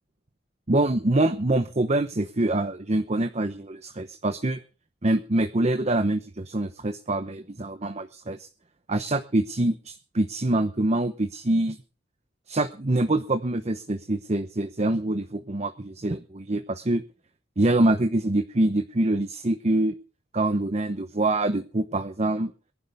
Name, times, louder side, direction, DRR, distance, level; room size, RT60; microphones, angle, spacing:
voice 1, 0.7-4.6 5.0-8.5 8.9-11.8 12.5-17.0 17.6-19.9 20.3-22.5, right 1 dB, 35° right, 8 dB, 0.9 m, -25 dB
23.0 x 11.0 x 3.5 m, 0.37 s
head